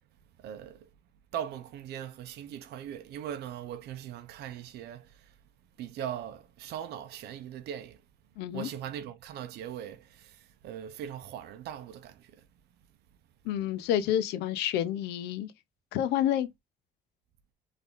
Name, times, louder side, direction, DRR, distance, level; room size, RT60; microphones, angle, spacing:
voice 1, 0.4-0.9 1.3-5.4 5.8-8.0 8.5-12.5, right 10 dB, 75° right, 0.7 m, -40 dB
voice 2, 8.4-8.7 13.4-15.5 15.9-16.5, left 11 dB, 90° left, 0.8 m, -29 dB
3.7 x 3.5 x 3.8 m
cardioid pair, 110°, 17 cm